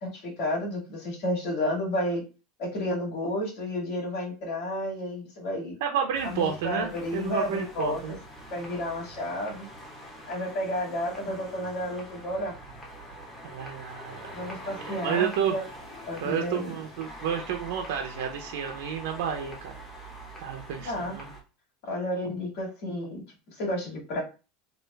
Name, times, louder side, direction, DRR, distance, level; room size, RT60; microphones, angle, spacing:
voice 1, 0.0-2.2 2.6-5.8 6.2-8.2 8.5-9.7 10.3-12.5 14.3-15.6 16.1-16.7 20.8-21.2 21.9-23.2 23.5-24.2, left 1 dB, 55° left, -3 dB, 1.9 m, -31 dB
voice 2, 5.8-8.2 13.4-14.5 14.8-15.5 16.2-19.7 20.4-21.3, right 8 dB, 75° right, 2 dB, 0.5 m, -31 dB
sound 1, 6.1-21.4, equal, 15° left, 1.0 m, -44 dB
3.3 x 2.4 x 3.2 m, 0.32 s
supercardioid pair, 155°, 0 cm